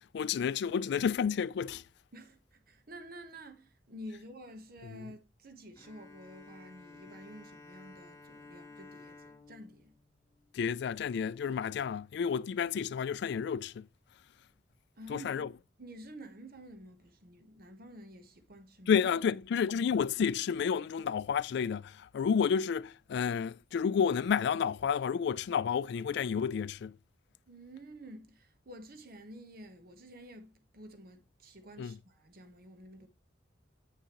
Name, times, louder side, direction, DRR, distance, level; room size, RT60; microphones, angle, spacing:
voice 1, 0.1-1.8 4.8-5.0 10.5-13.9 15.1-15.5 18.9-26.9 31.8-32.0, left 7 dB, 65° left, 0.3 m, -31 dB
voice 2, 2.1-9.9 15.0-15.5 15.8-18.9 27.5-33.1, right 1 dB, 55° right, 1.1 m, -50 dB
Bowed string instrument, 5.8-11.2, left 3 dB, 15° left, 0.8 m, -54 dB
8.7 x 6.3 x 3.0 m
head